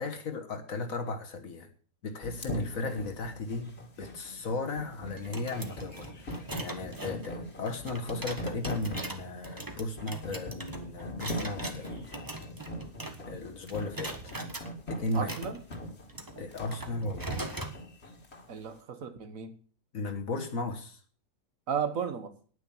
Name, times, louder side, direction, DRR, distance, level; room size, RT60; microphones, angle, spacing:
voice 1, 0.0-1.7 2.0-12.1 13.2-14.3 14.9-15.4 16.4-17.6 19.9-21.0, left 2 dB, 70° left, 5 dB, 1.8 m, -36 dB
sound 1, 2.2-18.5, left 1 dB, 50° left, 2.2 m, -41 dB
sound 2, 5.2-13.4 13.7-14.7 15.1-17.8, right 2 dB, 15° right, 1.2 m, -41 dB
voice 2, 15.1-15.6 18.5-19.5 21.7-22.3, right 7 dB, 70° right, 10 dB, 1.7 m, -34 dB
9.8 x 9.4 x 7.1 m, 0.43 s
omnidirectional pair, 1.5 m